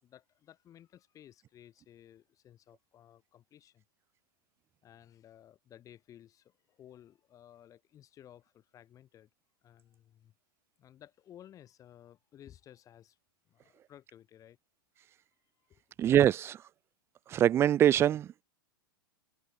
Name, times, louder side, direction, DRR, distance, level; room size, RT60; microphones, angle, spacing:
voice 1, 0.0-3.8 4.8-9.3 9.6-10.3 10.8-13.2 13.5-14.6 15.7-15.8, left 11 dB, 30° left, 7.6 m, -56 dB
voice 2, 16.0-16.6 17.3-18.3, right 11 dB, 20° right, 0.4 m, -23 dB
figure-of-eight pair, 95°, 12 cm